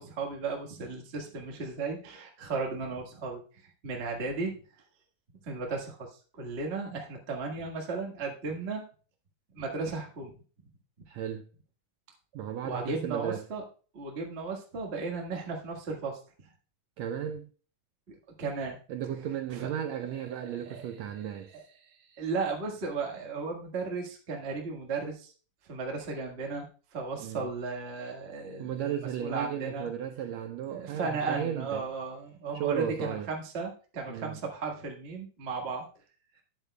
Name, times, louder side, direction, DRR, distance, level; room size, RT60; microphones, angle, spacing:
voice 1, 0.0-4.6 5.4-8.8 9.5-10.3 12.6-13.6 13.9-16.2 18.1-18.8 19.5-19.6 20.4-20.8 21.8-25.3 25.7-26.7 26.9-29.9 30.7-35.9, right 4 dB, 35° right, 1.0 m, -35 dB
voice 2, 11.1-11.4 12.3-13.4 17.0-17.5 18.9-21.5 27.2-27.5 28.6-31.8 32.5-33.3 34.1-34.4, right 9 dB, 90° right, 1.5 m, -34 dB
11.5 x 9.1 x 2.3 m
omnidirectional pair, 3.8 m